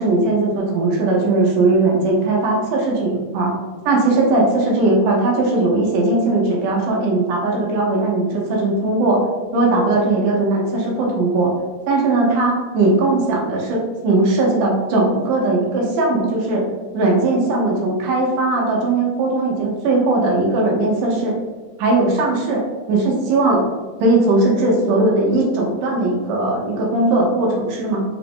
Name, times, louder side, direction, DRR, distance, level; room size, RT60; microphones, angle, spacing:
voice 1, 0.0-3.5 3.9-9.2 9.5-11.5 11.9-16.6 16.9-21.4 21.8-23.6 24.0-28.0, right 2 dB, 75° right, -1 dB, 2.1 m, -18 dB
5.7 x 2.5 x 3.5 m, 1.3 s
omnidirectional pair, 4.1 m